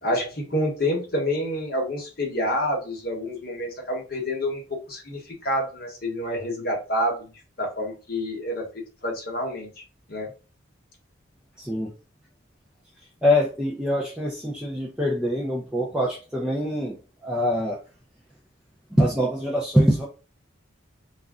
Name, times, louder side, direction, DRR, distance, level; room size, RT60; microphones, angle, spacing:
voice 1, 0.0-7.3 7.6-8.7 9.0-9.7 10.1-10.3, left 1 dB, 50° left, 0 dB, 1.0 m, -28 dB
voice 2, 11.6-11.9 13.2-17.0 17.2-17.8 18.9-20.0, equal, 5° right, -4 dB, 0.4 m, -24 dB
2.4 x 2.1 x 3.5 m, 0.33 s
head